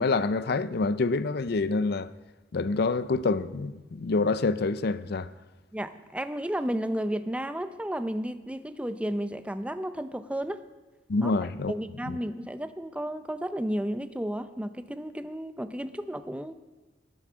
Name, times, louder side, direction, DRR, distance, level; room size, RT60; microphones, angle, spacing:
voice 1, 0.0-2.1 2.5-5.3 11.1-11.7 12.1-12.2, left 3 dB, 60° left, 0.5 m, -27 dB
voice 2, 5.7-10.6 11.2-11.4 11.7-16.5, equal, 5° right, 0.5 m, -33 dB
19.0 x 8.0 x 6.2 m
head